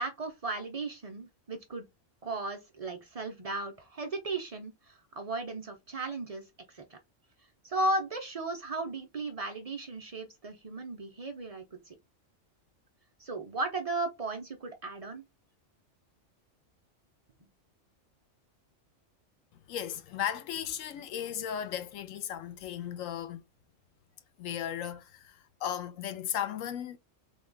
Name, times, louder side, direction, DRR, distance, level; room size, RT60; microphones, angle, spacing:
voice 1, 0.0-1.9 2.2-7.0 7.6-11.9 13.2-15.2, right 2 dB, 45° right, 0.5 m, -36 dB
voice 2, 19.7-23.4 24.4-27.0, left 10 dB, 85° left, 1.0 m, -36 dB
3.6 x 2.3 x 3.8 m
omnidirectional pair, 1.3 m